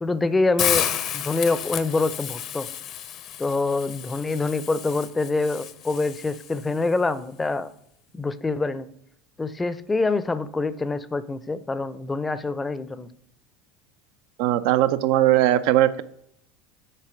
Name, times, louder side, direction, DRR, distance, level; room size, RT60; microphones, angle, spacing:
voice 1, 0.0-2.7 3.4-7.7 8.1-8.9 9.4-13.1, left 3 dB, 15° left, 15 dB, 0.6 m, -25 dB
Hiss, 0.6-6.7, left 10 dB, 50° left, 0.7 m, -31 dB
voice 2, 14.4-16.0, right 13 dB, 65° right, 12 dB, 0.5 m, -19 dB
6.7 x 4.7 x 5.9 m, 0.74 s
hypercardioid pair, 85°, 0 cm